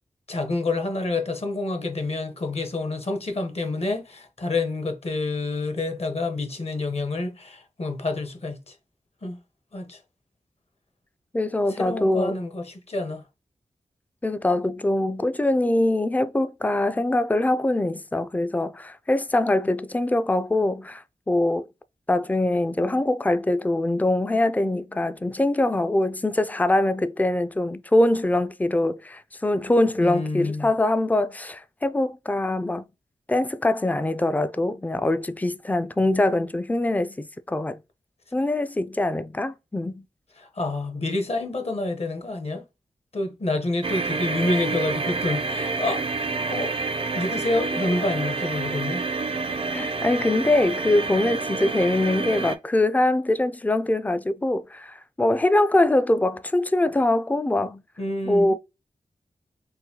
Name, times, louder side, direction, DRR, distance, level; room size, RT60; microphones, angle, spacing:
voice 1, 0.3-8.7 9.2-9.4 9.7-10.0 11.7-13.2 30.0-30.7 40.4-42.6 43.1-46.0 46.5-46.7 47.1-49.1 58.0-58.5, left 2 dB, 50° left, 0.9 m, -28 dB
voice 2, 11.3-12.4 14.2-21.7 22.1-32.9 33.3-37.8 38.3-40.0 49.7-57.8 58.3-58.5, left 1 dB, 10° left, 0.4 m, -23 dB
sound 1, 43.8-52.6, right 4 dB, 45° right, 0.5 m, -28 dB
3.8 x 2.3 x 2.8 m
cardioid pair, 45°, 14 cm